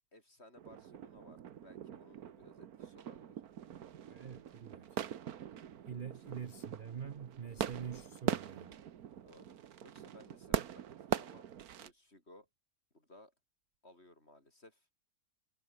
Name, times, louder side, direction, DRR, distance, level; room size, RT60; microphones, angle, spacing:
voice 1, 0.1-3.4 5.7-6.1 9.2-9.5 9.8-10.8 11.1-11.5 11.8-12.5 12.9-13.3 13.8-14.9, left 1 dB, 45° left, 7.2 m, -60 dB
sound 1, 0.6-11.9, right 9 dB, 85° right, 1.6 m, -42 dB
voice 2, 4.1-5.1 5.9-8.8, right 7 dB, 45° right, 0.8 m, -45 dB
omnidirectional pair, 1.6 m